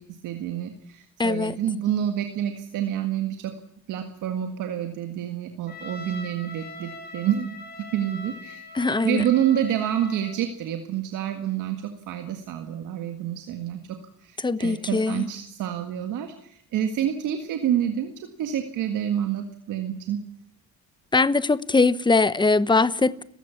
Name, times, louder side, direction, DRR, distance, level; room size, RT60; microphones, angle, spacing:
voice 1, 0.0-3.6 3.9-7.6 7.9-8.7 9.0-13.8 14.2-20.2, right 10 dB, 90° right, 1.9 m, -28 dB
voice 2, 1.2-1.6 8.7-9.2 14.4-15.3 21.1-23.2, left 3 dB, 15° left, 1.0 m, -21 dB
Trumpet, 5.7-10.4, left 2 dB, 35° left, 6.7 m, -42 dB
29.5 x 15.5 x 7.2 m
cardioid pair, 90°, 30 cm